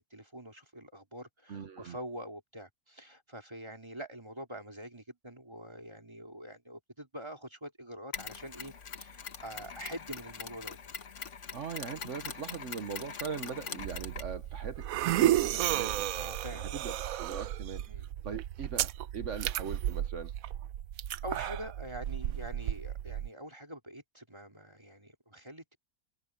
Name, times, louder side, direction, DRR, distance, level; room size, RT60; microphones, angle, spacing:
voice 1, 0.0-11.0 16.1-16.9 17.9-18.1 21.2-25.8, right 1 dB, 20° right, 3.3 m, -45 dB
voice 2, 1.5-2.0 11.5-16.1 16.5-17.8 18.2-20.3, right 6 dB, 60° right, 1.3 m, -40 dB
Mechanisms, 8.1-16.4, left 6 dB, 55° left, 1.6 m, -44 dB
sound 1, 13.8-23.3, right 12 dB, 75° right, 1.0 m, -33 dB
omnidirectional pair, 1.5 m